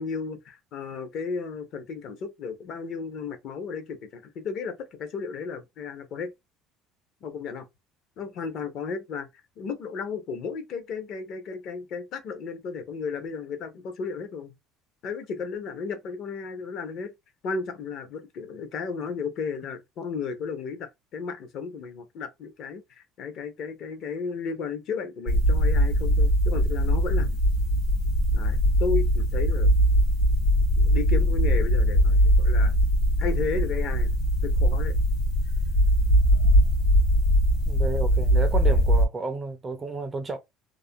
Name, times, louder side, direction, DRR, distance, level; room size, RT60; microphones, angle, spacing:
voice 1, 0.0-6.3 7.2-7.7 8.2-9.3 9.6-14.5 15.0-17.1 17.4-27.4 28.3-29.7 30.8-32.7 33.2-34.2 34.4-34.9, left 5 dB, 45° left, 0.6 m, -34 dB
sound 1, 25.3-39.1, equal, 85° left, 0.8 m, -21 dB
voice 2, 37.7-40.4, right 3 dB, 15° right, 0.3 m, -32 dB
2.4 x 2.1 x 2.6 m
cardioid pair, 175°, 0 cm